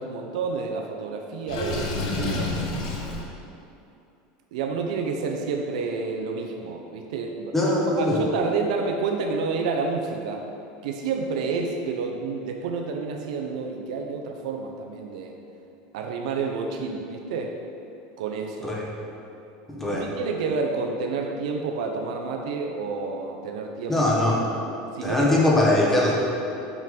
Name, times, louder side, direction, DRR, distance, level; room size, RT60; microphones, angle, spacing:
voice 1, 0.0-2.6 4.5-7.7 8.0-10.4 10.8-15.3 15.9-17.6 18.2-18.7 19.9-24.0 24.9-25.5, right 4 dB, 85° right, 2 dB, 0.7 m, -29 dB
Water / Sink (filling or washing), 1.5-3.2, left 3 dB, 85° left, 1.3 m, -28 dB
voice 2, 7.5-8.2 18.6-18.8 19.7-20.1 23.9-24.4 25.0-26.1, left 1 dB, 5° left, -4 dB, 1.3 m, -21 dB
6.2 x 6.0 x 5.2 m, 2.7 s
supercardioid pair, 160°, 4 cm